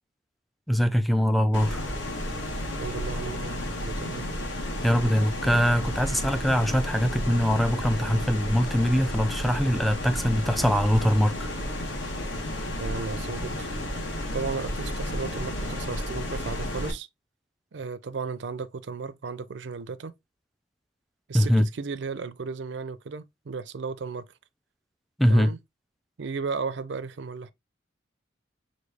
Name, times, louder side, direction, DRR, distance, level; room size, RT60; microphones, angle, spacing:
voice 1, 0.7-1.8 4.8-11.3 21.3-21.7 25.2-25.5, equal, ahead, 0.3 m, -22 dB
sound 1, 1.5-16.9, left 1 dB, 75° left, 1.0 m, -32 dB
voice 2, 2.8-4.3 12.8-13.7 14.3-17.1 17.7-20.1 21.3-24.3 25.3-25.6 26.2-27.5, right 4 dB, 65° right, 0.5 m, -34 dB
6.0 x 2.3 x 3.3 m
head